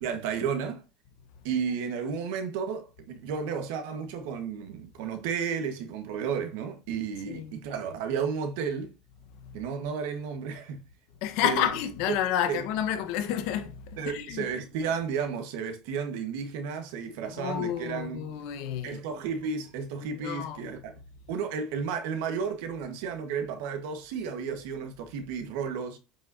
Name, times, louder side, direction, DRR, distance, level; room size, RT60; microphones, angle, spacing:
voice 1, 0.0-0.8 1.4-8.9 9.5-10.8 11.4-11.7 12.5-12.6 14.0-18.3 18.8-20.9 21.3-26.0, right 6 dB, 75° right, 1.5 m, -32 dB
voice 2, 11.2-14.4 17.3-19.0 20.0-20.7, left 10 dB, 65° left, 1.2 m, -30 dB
7.6 x 5.6 x 2.8 m
cardioid pair, 150°, 0 cm